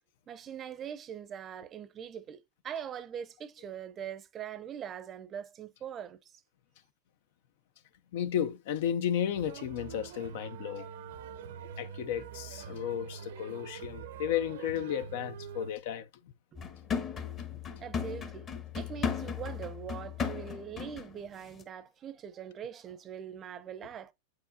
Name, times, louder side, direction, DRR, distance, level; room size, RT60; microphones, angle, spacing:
voice 1, 0.3-6.4 17.8-18.5 18.7-24.1, right 9 dB, 30° right, 0.6 m, -42 dB
voice 2, 8.1-10.9 11.8-16.1, left 9 dB, 65° left, 0.6 m, -33 dB
sound 1, 9.3-15.7, right 7 dB, 75° right, 0.6 m, -44 dB
sound 2, 16.6-21.2 21.5-21.6, left 6 dB, 30° left, 1.1 m, -36 dB
7.7 x 4.7 x 2.7 m
hypercardioid pair, 120°, 0 cm